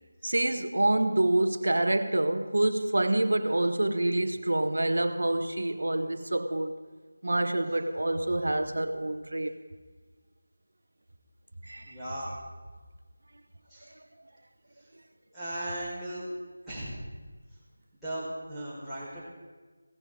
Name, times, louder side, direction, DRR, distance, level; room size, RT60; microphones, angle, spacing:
voice 1, 0.2-6.7 7.2-9.5 11.6-12.0, right 1 dB, 75° right, 9 dB, 1.1 m, -27 dB
voice 2, 11.8-12.3 13.7-13.9 15.3-16.3 16.7-16.9 18.0-19.2, right 1 dB, ahead, -14 dB, 4.5 m, -37 dB
16.5 x 14.0 x 3.8 m, 1.4 s
figure-of-eight pair, 165°, 0 cm